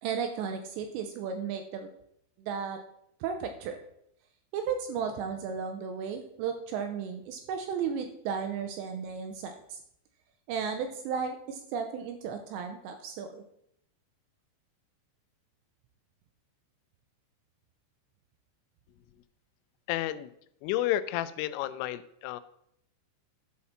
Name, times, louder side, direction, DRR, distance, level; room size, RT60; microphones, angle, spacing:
voice 1, 0.0-1.9 2.4-2.8 3.2-3.8 4.5-9.8 10.5-13.4, right 6 dB, 85° right, 6 dB, 2.6 m, -34 dB
voice 2, 19.9-20.3 20.6-22.4, left 13 dB, 90° left, 14 dB, 3.1 m, -31 dB
11.5 x 4.2 x 5.7 m, 0.74 s
omnidirectional pair, 5.7 m